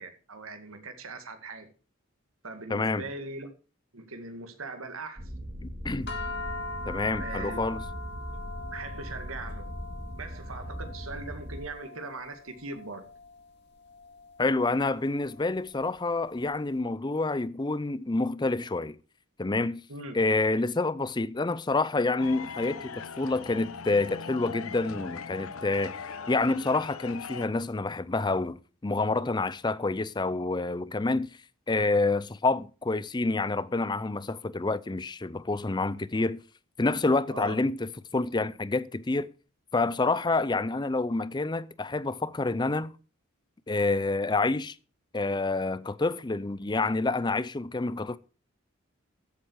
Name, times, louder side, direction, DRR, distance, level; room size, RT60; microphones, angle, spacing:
voice 1, 0.0-1.7 2.4-3.5 3.9-5.3 7.2-7.7 8.3-8.4 8.7-9.7 10.2-13.1 19.9-20.2 37.3-37.6, right 3 dB, 80° right, 2.1 m, -40 dB
voice 2, 2.7-3.0 5.6-6.1 6.9-7.8 14.4-19.0 19.4-19.8 20.1-25.9 26.3-31.3 31.7-36.4 36.8-39.3 39.7-42.9 43.7-44.8 45.1-48.2, left 3 dB, 20° left, 0.5 m, -28 dB
sound 1, 5.2-11.6, equal, 40° right, 2.3 m, -39 dB
sound 2, 6.1-16.5, left 2 dB, 55° left, 2.1 m, -42 dB
sound 3, 22.2-27.5, left 5 dB, 90° left, 0.8 m, -40 dB
14.0 x 8.3 x 4.7 m
head